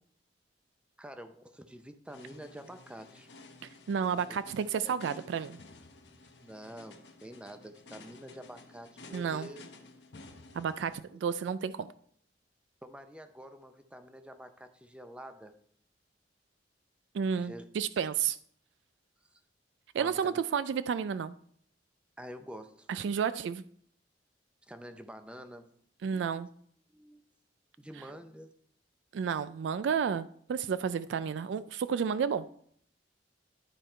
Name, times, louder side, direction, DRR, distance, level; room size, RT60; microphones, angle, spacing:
voice 1, 1.0-3.3 4.3-4.4 4.8-5.0 6.4-9.6 12.8-15.6 17.4-17.6 17.9-18.0 19.3-19.4 20.0-20.4 22.2-22.9 24.7-25.7 26.1-26.5 26.9-27.2 27.8-28.5, equal, 5° right, 8 dB, 0.6 m, -47 dB
sound 1, 2.1-11.0, left 3 dB, 70° left, 1.0 m, -53 dB
voice 2, 3.9-5.6 9.1-9.5 10.5-11.9 17.1-18.4 19.9-21.3 22.9-23.6 26.0-26.5 29.1-32.5, right 7 dB, 85° right, 14 dB, 0.3 m, -31 dB
11.5 x 4.6 x 4.3 m, 0.63 s
head